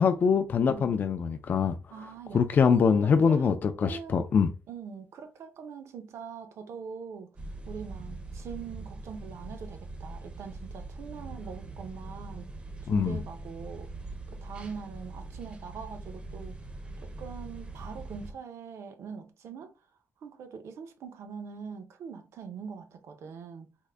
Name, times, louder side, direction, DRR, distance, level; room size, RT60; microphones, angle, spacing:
voice 1, 0.0-1.7 2.3-4.5 12.9-13.2, left 6 dB, 40° left, 0.3 m, -24 dB
voice 2, 0.7-1.0 1.9-4.3 4.7-7.3 7.7-12.5 12.8-13.9 14.3-16.6 17.0-19.7 20.2-23.7, right 6 dB, 75° right, 0.5 m, -43 dB
sound 1, 7.4-18.3, right 2 dB, 20° right, 0.5 m, -42 dB
3.6 x 2.1 x 3.2 m
wide cardioid pair, 150°, 5 cm